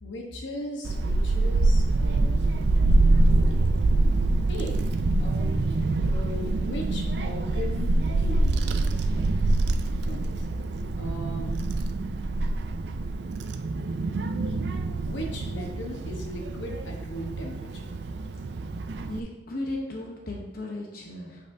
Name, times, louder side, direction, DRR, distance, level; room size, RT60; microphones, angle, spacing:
voice 1, 0.0-2.4 3.4-3.6 4.5-4.8 5.2-5.6 6.0-9.6 10.0-10.5 11.0-11.5 15.0-17.9, left 1 dB, 70° left, 1 dB, 1.0 m, -38 dB
Child speech kid speaking / Wind, 0.8-19.2, right 2 dB, 60° right, 0.4 m, -25 dB
voice 2, 19.1-21.4, left 2 dB, 50° left, -1 dB, 0.9 m, -35 dB
8.6 x 5.2 x 2.7 m, 1.1 s
head